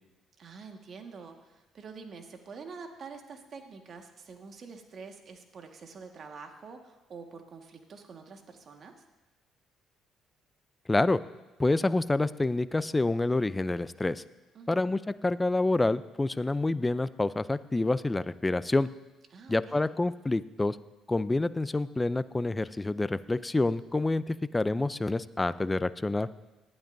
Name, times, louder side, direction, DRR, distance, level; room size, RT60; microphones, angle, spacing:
voice 1, 0.4-9.0 14.5-14.9 19.3-19.9, right 5 dB, 50° right, 4 dB, 1.7 m, -47 dB
voice 2, 10.9-11.2 11.6-14.2 14.7-18.9 19.5-20.8 21.1-26.3, left 2 dB, 20° left, 15 dB, 0.5 m, -27 dB
19.0 x 12.0 x 2.7 m, 1.1 s
supercardioid pair, 60°, 0 cm